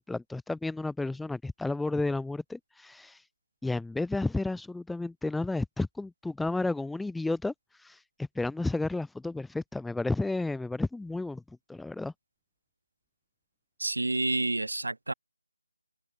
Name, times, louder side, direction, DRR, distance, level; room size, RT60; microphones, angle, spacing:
voice 1, 0.0-3.2 3.6-7.5 7.8-8.0 8.3-11.4 11.7-12.1, left 2 dB, ahead, 1.0 m, -32 dB
voice 2, 13.8-15.1, right 2 dB, 90° right, 7.1 m, -29 dB
open air
figure-of-eight pair, 170°, 0 cm